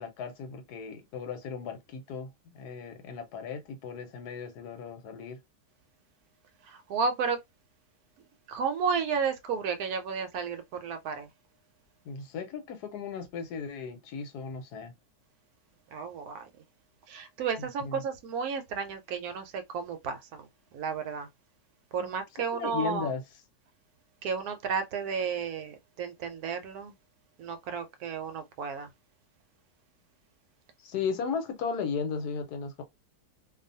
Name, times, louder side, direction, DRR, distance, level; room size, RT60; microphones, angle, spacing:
voice 1, 0.0-5.4 12.0-14.9 17.8-18.0 22.0-22.1 22.5-23.2 30.8-32.8, left 6 dB, 80° left, 1.2 m, -36 dB
voice 2, 6.6-7.4 8.5-11.3 15.9-16.5 17.1-20.5 20.7-21.3 21.9-23.1 24.2-26.9 27.4-28.9, right 5 dB, 70° right, 1.0 m, -32 dB
2.6 x 2.4 x 2.6 m
omnidirectional pair, 1.7 m